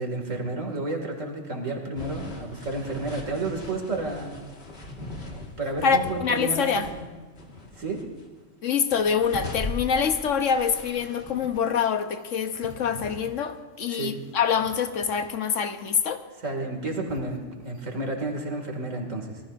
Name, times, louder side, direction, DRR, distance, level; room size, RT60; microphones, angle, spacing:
voice 1, 0.0-4.4 5.6-7.1 7.8-8.0 13.9-14.1 16.4-19.4, right 2 dB, 85° right, 1 dB, 2.8 m, -31 dB
sound 1, 2.0-7.1 7.4-8.2 8.7-11.6, left 2 dB, 55° left, 2.1 m, -39 dB
voice 2, 5.8-6.9 8.6-16.2, left 6 dB, 80° left, 8 dB, 1.3 m, -25 dB
sound 2, 12.1-17.9, right 1 dB, 50° right, 3.1 m, -48 dB
26.5 x 19.0 x 2.6 m, 1.3 s
omnidirectional pair, 1.3 m